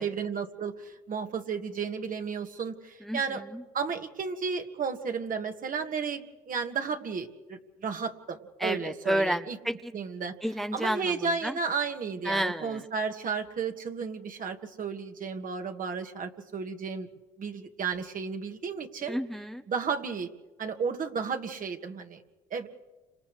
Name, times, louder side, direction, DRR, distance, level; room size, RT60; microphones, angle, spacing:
voice 1, 0.0-3.4 3.7-9.6 9.9-10.3 10.7-17.1 17.4-19.2 19.7-20.3 20.6-22.2 22.5-22.7, right 5 dB, 50° right, 5 dB, 1.9 m, -33 dB
voice 2, 3.0-3.6 8.6-9.9 10.4-11.1 11.4-11.6 12.2-12.8 19.1-19.6, equal, ahead, 7 dB, 0.8 m, -30 dB
30.0 x 26.5 x 3.3 m, 1.2 s
supercardioid pair, 65°, 18 cm